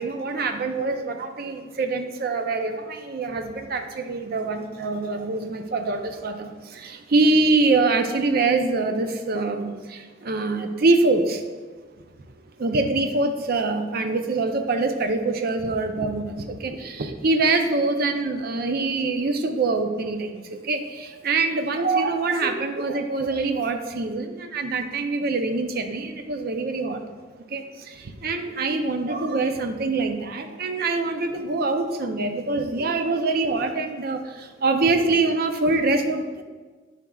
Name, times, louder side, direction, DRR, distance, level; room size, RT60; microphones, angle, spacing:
voice 1, 0.0-11.4 12.6-27.0 27.5-36.4, right 3 dB, 55° right, 6 dB, 0.6 m, -24 dB
11.0 x 4.5 x 2.3 m, 1.4 s
head